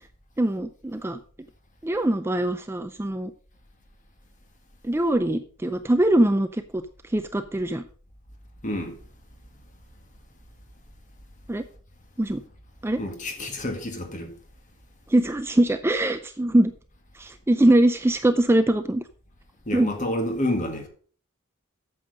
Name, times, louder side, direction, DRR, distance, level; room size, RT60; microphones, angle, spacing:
voice 1, 0.4-1.2 1.8-3.3 4.8-6.8 7.1-7.8 11.5-11.6 12.2-12.4 12.8-13.0 15.1-16.7 17.2-19.0 19.7-19.9, right 1 dB, 10° right, 0.4 m, -22 dB
voice 2, 8.6-9.0 13.0-14.3 19.7-20.9, left 1 dB, 35° left, 1.9 m, -29 dB
8.7 x 7.1 x 5.2 m
head